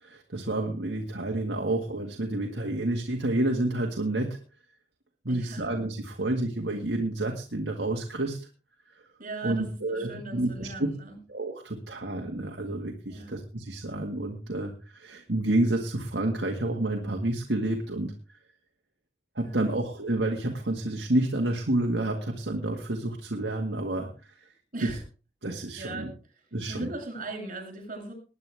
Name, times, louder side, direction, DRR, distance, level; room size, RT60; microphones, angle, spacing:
voice 1, 0.0-4.4 5.2-8.4 9.4-10.7 11.3-18.1 19.4-24.1 24.8-24.9 25.4-26.1 26.5-26.9, right 1 dB, 65° right, 1 dB, 2.0 m, -29 dB
voice 2, 5.3-5.7 9.2-11.2 13.1-13.4 19.4-19.8 24.7-25.0 25.8-26.4 26.7-28.1, right 2 dB, 45° right, 3 dB, 7.8 m, -39 dB
20.5 x 9.9 x 3.6 m, 0.35 s
head